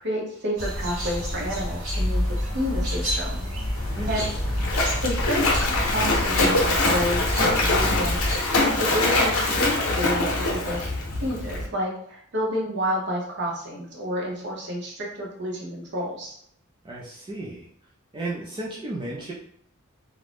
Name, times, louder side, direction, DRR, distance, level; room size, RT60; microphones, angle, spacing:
voice 1, 0.0-3.5 4.1-4.3 5.0-5.4 5.8-8.2 8.6-10.9 11.2-16.4, equal, 55° right, -2 dB, 0.8 m, -30 dB
sound 1, 0.6-8.4, equal, 80° right, 1.1 m, -28 dB
Splash splatter, 3.8-11.7, left 2 dB, 90° left, 0.6 m, -24 dB
voice 2, 16.8-17.7 18.1-19.3, right 2 dB, 25° right, -5 dB, 0.3 m, -34 dB
2.5 x 2.1 x 3.3 m, 0.67 s
head